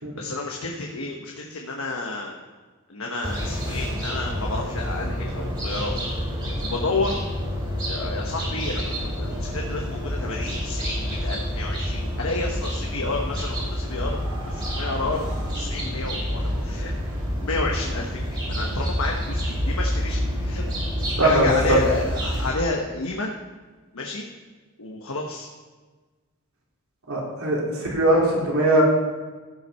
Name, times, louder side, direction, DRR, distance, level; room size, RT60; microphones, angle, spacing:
voice 1, 0.2-2.4 2.9-5.9 6.6-7.1 7.9-14.2 14.5-16.9 17.4-20.6 21.2-23.3 23.9-24.3 24.8-25.5, left 3 dB, 70° left, 0 dB, 1.1 m, -30 dB
sound 1, 3.2-22.5, equal, 20° right, 3.7 m, -28 dB
voice 2, 21.2-21.8 27.1-27.6 27.9-28.8, right 1 dB, 75° right, -4 dB, 3.3 m, -20 dB
15.0 x 5.8 x 5.5 m, 1.3 s
head